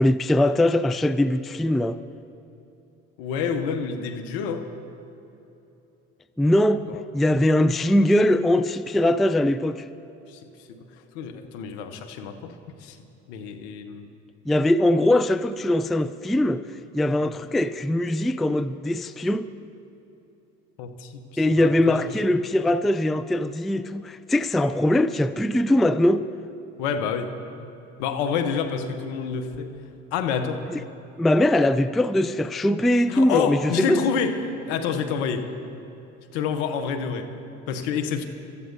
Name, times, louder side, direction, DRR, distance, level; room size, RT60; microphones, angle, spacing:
voice 1, 0.0-2.0 6.4-6.8 7.1-9.9 14.5-16.6 16.9-19.5 21.4-26.2 31.2-34.0, left 1 dB, ahead, 0.3 m, -21 dB
voice 2, 3.2-4.7 6.9-7.0 10.3-12.5 12.8-13.0 13.3-14.1 17.2-17.3 20.8-22.1 26.8-27.3 28.0-29.7 30.1-30.7 33.1-35.5 36.3-37.3 37.7-38.2, left 6 dB, 75° left, 1.1 m, -28 dB
26.0 x 14.0 x 2.7 m
hypercardioid pair, 60°, 35 cm